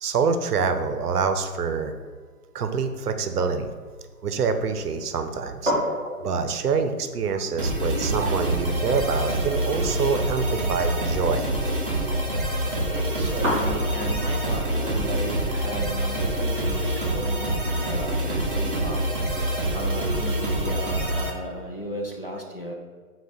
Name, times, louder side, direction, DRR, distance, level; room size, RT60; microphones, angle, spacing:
voice 1, 0.0-1.9 2.5-3.7 4.2-5.7 6.2-11.5, right 5 dB, 80° right, 8 dB, 0.6 m, -26 dB
sound 1, 3.0-18.8, equal, 10° right, 1.0 m, -36 dB
sound 2, 7.6-21.3, right 1 dB, 35° right, 0.5 m, -26 dB
voice 2, 12.6-19.0 19.7-22.7, equal, 40° left, 0 dB, 0.4 m, -35 dB
5.6 x 2.4 x 3.9 m, 1.5 s
hypercardioid pair, 170°, 45 cm